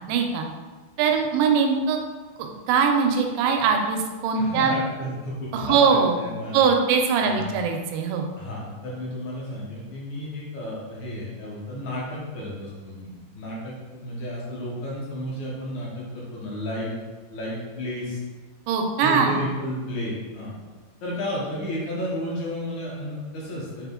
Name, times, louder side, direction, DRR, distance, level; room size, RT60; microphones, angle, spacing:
voice 1, 0.1-0.5 1.0-2.0 2.4-4.7 5.5-6.1 6.5-8.3 18.7-19.4, right 6 dB, 90° right, 3 dB, 2.8 m, -21 dB
voice 2, 4.3-6.6 7.2-7.5 8.4-13.1 13.3-16.9 17.3-18.2 19.0-20.5 21.0-23.9, left 1 dB, 70° left, -5 dB, 1.8 m, -32 dB
7.3 x 3.5 x 3.7 m, 1.3 s
omnidirectional pair, 4.9 m